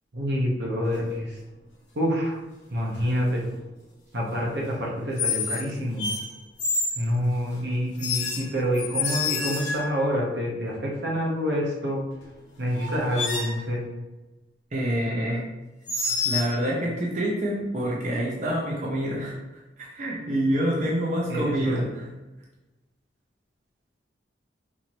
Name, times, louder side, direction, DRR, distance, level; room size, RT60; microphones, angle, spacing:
voice 1, 0.1-1.4 2.0-2.4 2.7-3.4 4.1-6.1 7.0-12.0 12.6-13.8 21.3-21.9, equal, 70° right, -2 dB, 0.9 m, -27 dB
sound 1, 0.8-1.2 2.9-3.3 5.2-5.7 6.0-7.0 8.0-10.0 12.2-12.3 12.7-13.6 15.9-16.5, left 4 dB, 75° left, 0.9 m, -28 dB
voice 2, 14.7-15.4 16.2-19.4 19.8-22.1, right 1 dB, 40° right, -4 dB, 0.7 m, -27 dB
4.4 x 2.7 x 3.0 m, 1.1 s
head